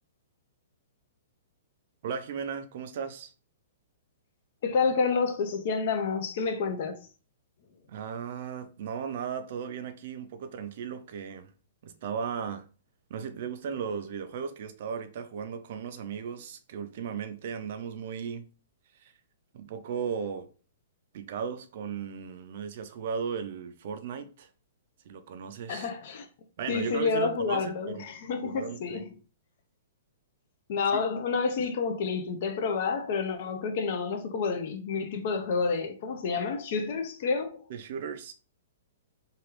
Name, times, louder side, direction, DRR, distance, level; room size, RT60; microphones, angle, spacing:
voice 1, 2.0-3.3 7.9-11.5 11.8-12.7 13.1-18.5 18.9-19.1 19.5-20.5 21.1-24.5 25.0-25.9 26.6-28.0 28.4-29.1 30.9-31.0 37.7-38.3, right 6 dB, 60° right, 0.4 m, -36 dB
voice 2, 4.6-7.0 25.7-26.3 26.7-29.1 30.7-37.6, left 5 dB, 55° left, 0.6 m, -29 dB
3.0 x 2.4 x 3.0 m
hypercardioid pair, 135°, 0 cm